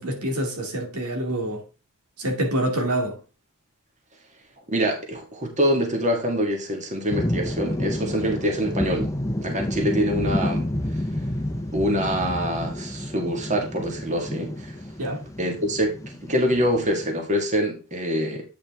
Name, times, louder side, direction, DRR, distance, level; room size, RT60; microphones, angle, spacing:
voice 1, 0.0-1.6 2.2-3.2 15.0-15.2, right 1 dB, 90° right, 2.4 m, -26 dB
voice 2, 4.7-9.1 9.4-10.7 11.7-14.7 15.4-15.9 16.3-18.4, equal, 35° right, 1.9 m, -25 dB
sound 1, 7.1-17.1, left 1 dB, 15° left, 0.8 m, -29 dB
8.8 x 5.4 x 3.5 m
head